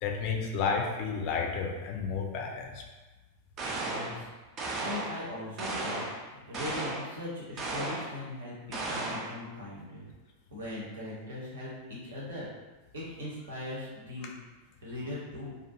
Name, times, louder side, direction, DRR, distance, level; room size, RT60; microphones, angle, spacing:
voice 1, 0.0-2.8, left 5 dB, 45° left, 1 dB, 0.4 m, -31 dB
sound 1, 3.6-4.2 4.6-5.2 5.6-6.2 6.5-7.1 7.6-8.1 8.7-9.4, right 2 dB, 30° right, 0.4 m, -34 dB
voice 2, 3.7-4.5 4.8-10.1 10.5-12.5 12.9-14.3 14.8-15.6, left 1 dB, 70° right, -6 dB, 0.9 m, -40 dB
2.4 x 2.2 x 2.6 m, 1.2 s
figure-of-eight pair, 90°, 0 cm